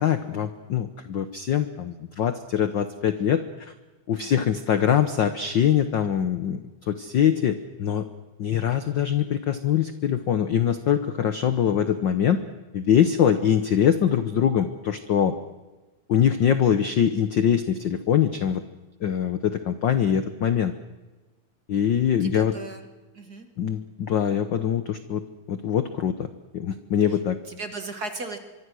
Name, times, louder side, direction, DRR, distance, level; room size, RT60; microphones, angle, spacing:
voice 1, 0.0-3.7 4.1-8.1 8.4-12.4 12.7-15.4 16.1-18.6 19.0-20.7 21.7-22.5 23.6-25.2 25.5-26.3 26.5-27.4, left 9 dB, 80° left, 10 dB, 1.0 m, -23 dB
voice 2, 22.2-22.8 23.1-23.5 27.5-28.4, right 3 dB, 35° right, 6 dB, 1.9 m, -36 dB
24.5 x 24.0 x 6.3 m, 1.2 s
omnidirectional pair, 3.4 m